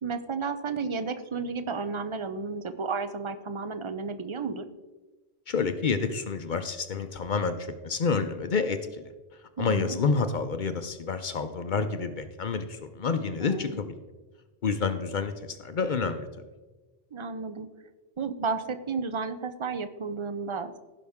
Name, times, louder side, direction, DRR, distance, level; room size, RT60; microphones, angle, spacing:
voice 1, 0.0-4.7 9.6-10.0 13.4-13.8 17.1-17.7 18.2-20.8, right 4 dB, 35° right, 10 dB, 0.5 m, -32 dB
voice 2, 5.5-9.1 9.6-13.9 14.6-16.3, left 5 dB, 55° left, 9 dB, 0.7 m, -29 dB
16.0 x 5.5 x 3.6 m, 1.2 s
omnidirectional pair, 1.1 m